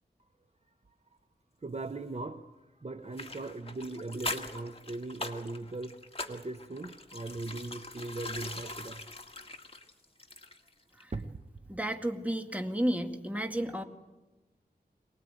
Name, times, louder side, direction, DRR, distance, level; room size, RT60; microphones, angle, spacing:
voice 1, 1.6-6.0 6.3-9.2 11.1-11.4, right 2 dB, 40° right, 8 dB, 1.0 m, -39 dB
sound 1, 3.1-10.7 11.0-11.1, left 2 dB, 35° left, 1.9 m, -42 dB
voice 2, 11.7-13.8, right 1 dB, 10° right, 5 dB, 2.1 m, -32 dB
23.5 x 19.5 x 9.1 m, 1.1 s
wide cardioid pair, 70°, 17 cm